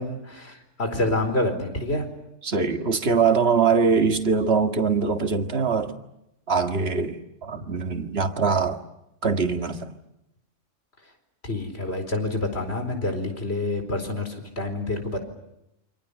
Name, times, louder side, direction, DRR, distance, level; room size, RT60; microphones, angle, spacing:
voice 1, 0.0-2.1 7.5-7.7 11.4-15.2, left 2 dB, 55° left, 4.8 m, -28 dB
voice 2, 2.4-5.9 6.5-8.8 9.2-9.9, right 5 dB, 55° right, 2.1 m, -22 dB
29.0 x 26.5 x 7.0 m
omnidirectional pair, 1.3 m